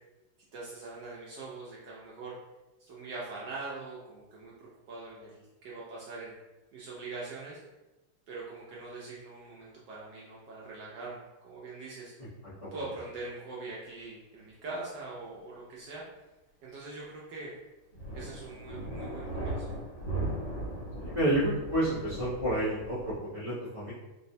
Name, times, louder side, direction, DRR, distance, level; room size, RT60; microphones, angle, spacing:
voice 1, 0.5-2.4 2.8-4.5 4.9-6.3 6.7-7.6 8.3-12.1 12.7-16.0 16.6-17.5 18.1-19.7, right 3 dB, 70° right, -5 dB, 1.1 m, -42 dB
sound 1, 17.9-23.2, right 1 dB, 65° left, 1.7 m, -38 dB
voice 2, 21.0-23.9, right 1 dB, 35° left, -12 dB, 0.7 m, -30 dB
3.9 x 2.1 x 2.6 m, 1.1 s
omnidirectional pair, 2.3 m